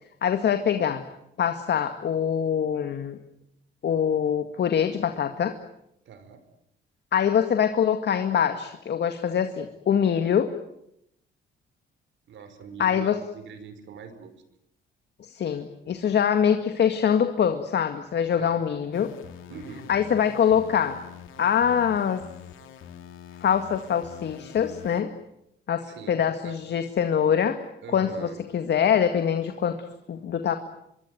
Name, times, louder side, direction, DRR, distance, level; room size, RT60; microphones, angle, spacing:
voice 1, 0.2-1.0 1.4-3.2 3.8-5.6 7.1-10.5 12.8-13.2 15.3-19.1 19.9-21.0 21.4-22.2 23.4-25.1 25.7-27.6 27.9-30.6, left 8 dB, 60° left, 8 dB, 2.0 m, -24 dB
voice 2, 6.1-6.4 12.3-14.3 18.4-18.6 19.5-19.9 25.8-26.6 27.8-28.4, right 6 dB, 70° right, 10 dB, 5.0 m, -43 dB
sound 1, 18.9-25.0, left 8 dB, 85° left, 2.9 m, -45 dB
26.0 x 23.0 x 9.3 m, 0.79 s
cardioid pair, 90°, 20 cm